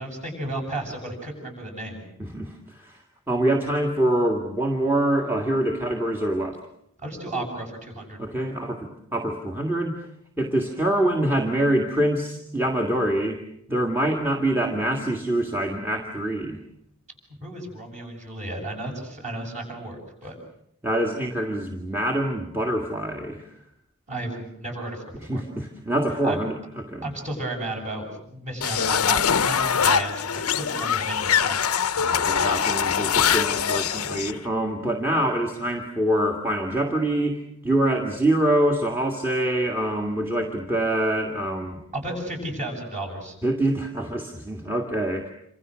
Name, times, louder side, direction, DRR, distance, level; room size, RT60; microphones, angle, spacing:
voice 1, 0.0-2.0 7.0-8.2 17.4-20.4 24.1-25.0 25.3-25.4 26.2-26.4 27.0-31.7 41.9-43.4, right 1 dB, 35° right, 1 dB, 8.0 m, -33 dB
voice 2, 2.2-3.0 3.3-6.6 8.2-10.0 10.4-13.4 13.7-16.6 20.8-23.4 25.3-27.1 32.0-37.4 37.6-41.8 43.4-45.3, right 1 dB, 10° right, 2 dB, 2.0 m, -25 dB
sound 1, 28.6-34.3, left 7 dB, 80° left, 0.9 m, -23 dB
27.5 x 27.0 x 6.3 m, 0.74 s
head